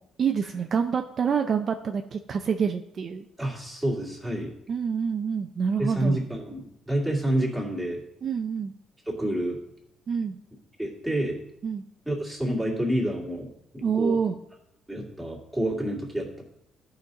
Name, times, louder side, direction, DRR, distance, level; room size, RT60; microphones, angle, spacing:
voice 1, 0.2-3.2 4.7-6.2 8.2-8.7 10.1-10.4 11.6-11.8 13.8-14.4, right 6 dB, 40° right, 6 dB, 0.5 m, -27 dB
voice 2, 3.4-4.5 5.8-8.0 9.1-9.6 10.8-11.4 12.1-14.2 14.9-16.4, right 1 dB, ahead, -4 dB, 2.3 m, -28 dB
13.5 x 5.2 x 4.0 m, 0.77 s
cardioid pair, 135°, 0 cm